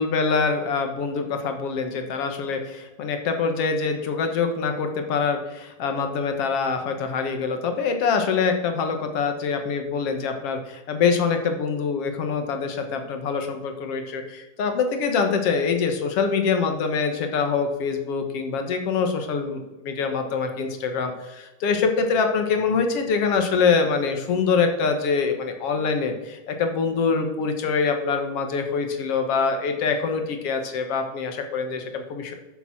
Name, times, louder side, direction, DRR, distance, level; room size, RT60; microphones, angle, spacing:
voice 1, 0.0-32.3, left 5 dB, 55° left, 5 dB, 2.1 m, -24 dB
12.0 x 7.0 x 6.1 m, 1.1 s
omnidirectional pair, 3.6 m